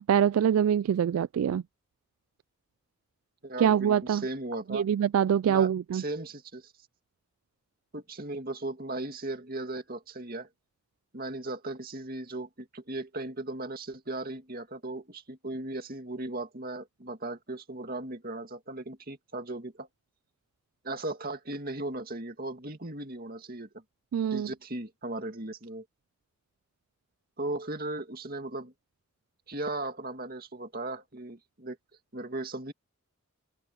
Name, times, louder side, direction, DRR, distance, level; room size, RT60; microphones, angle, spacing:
voice 1, 0.0-1.6 3.6-4.2 4.7-6.0 24.1-24.5, right 8 dB, 80° right, 0.3 m, -24 dB
voice 2, 3.4-4.8 5.5-6.7 7.9-10.5 11.1-19.9 20.8-23.8 24.3-25.8 27.4-28.7 29.5-31.8 32.1-32.7, right 2 dB, 45° right, 2.3 m, -37 dB
open air
head